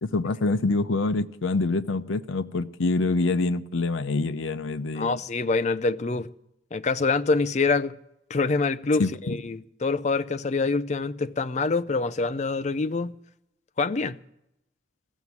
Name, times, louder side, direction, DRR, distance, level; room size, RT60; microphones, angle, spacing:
voice 1, 0.0-5.2 9.0-9.4, left 3 dB, 80° left, 0.6 m, -26 dB
voice 2, 4.9-6.3 6.7-8.0 8.3-13.1 13.8-14.2, left 3 dB, 35° left, 0.4 m, -25 dB
15.0 x 7.2 x 9.5 m
head